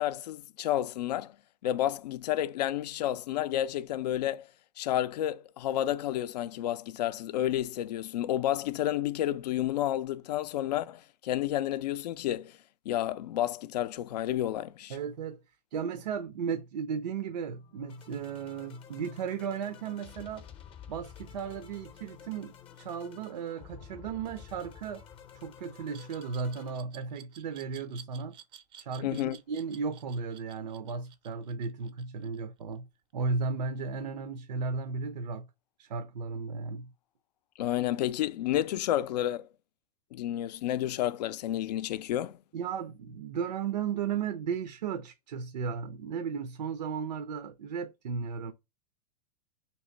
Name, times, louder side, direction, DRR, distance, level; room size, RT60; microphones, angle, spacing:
voice 1, 0.0-1.3 1.6-4.5 4.8-12.5 12.9-15.0 29.0-29.4 37.6-39.5 40.1-42.4, left 12 dB, 80° left, 0.4 m, -30 dB
voice 2, 14.9-15.4 15.7-20.4 20.9-25.0 25.3-28.3 28.8-32.9 33.1-35.5 35.8-36.9 42.5-48.5, right 5 dB, 90° right, 0.5 m, -35 dB
sound 1, 17.5-26.8, left 9 dB, 25° left, 0.6 m, -51 dB
Glass, 25.9-32.8, right 8 dB, 25° right, 0.4 m, -53 dB
3.1 x 2.9 x 4.3 m
hypercardioid pair, 125°, 21 cm